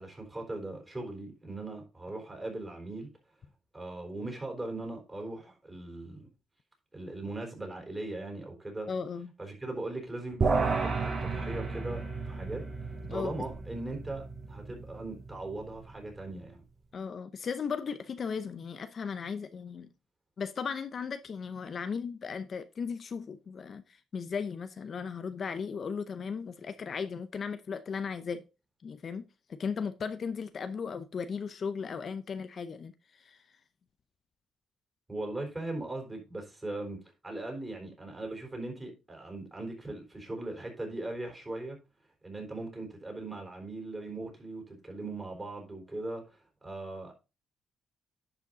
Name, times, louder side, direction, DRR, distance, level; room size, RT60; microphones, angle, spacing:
voice 1, 0.0-3.1 3.7-6.3 6.9-8.9 9.4-12.7 13.1-16.6 35.1-37.0 37.2-41.8 42.2-47.1, right 2 dB, 20° right, 4.1 m, -39 dB
voice 2, 8.9-9.3 13.1-13.3 16.9-19.9 20.4-28.4 28.8-33.4, left 6 dB, 50° left, 0.6 m, -36 dB
sound 1, 10.4-15.9, right 4 dB, 45° right, 2.6 m, -33 dB
11.0 x 5.1 x 3.9 m
cardioid pair, 90°, 0 cm